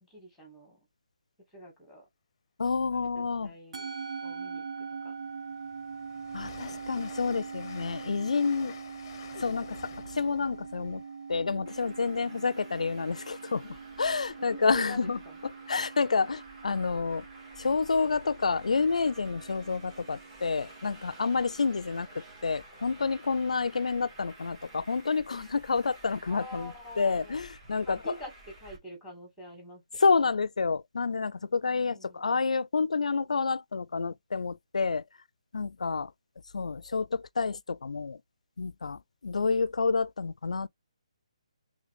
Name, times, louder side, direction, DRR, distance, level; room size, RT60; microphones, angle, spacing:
voice 1, 0.0-0.8 1.5-2.1 2.8-3.9 4.2-5.1 14.4-15.4 26.2-27.4 27.8-28.3 28.6-29.8 31.7-32.2, equal, ahead, 2.1 m, -46 dB
voice 2, 2.6-3.5 6.3-8.7 9.4-11.0 11.3-15.2 15.7-17.2 17.6-28.1 30.0-35.0 35.5-36.1 36.5-38.2 38.6-40.7, left 4 dB, 85° left, 0.4 m, -29 dB
Musical instrument, 3.7-22.2, right 5 dB, 75° right, 0.7 m, -43 dB
Train, 4.3-4.4 4.8-12.5, left 7 dB, 30° left, 0.6 m, -51 dB
Traffic noise roadway noise, 11.7-28.8, right 2 dB, 20° right, 1.8 m, -52 dB
3.7 x 3.3 x 3.4 m
hypercardioid pair, 160°, 4 cm